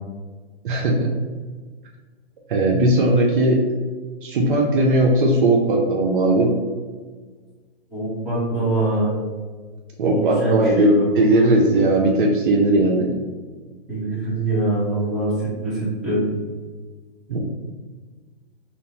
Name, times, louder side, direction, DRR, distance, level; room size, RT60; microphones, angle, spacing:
voice 1, 0.6-1.1 2.5-3.6 4.2-6.5 10.0-13.1 17.3-17.5, right 1 dB, 55° right, 0 dB, 0.5 m, -18 dB
voice 2, 7.9-9.1 10.1-11.1 13.9-16.2, right 2 dB, ahead, -12 dB, 0.8 m, -23 dB
2.8 x 2.0 x 2.8 m, 1.4 s
hypercardioid pair, 145°, 31 cm